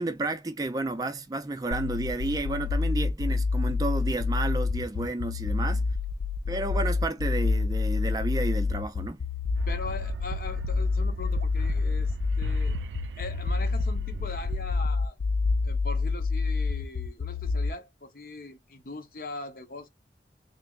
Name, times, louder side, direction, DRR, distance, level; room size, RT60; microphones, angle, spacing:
voice 1, 0.0-5.9 6.5-9.2, right 2 dB, 20° right, 0.4 m, -31 dB
sound 1, 1.7-17.7, left 4 dB, 85° left, 0.4 m, -27 dB
sound 2, 9.6-14.9, right 6 dB, 90° right, 0.4 m, -37 dB
voice 2, 9.7-12.8 13.2-15.2 15.6-19.9, left 2 dB, 55° left, 0.8 m, -40 dB
3.4 x 3.3 x 2.4 m
head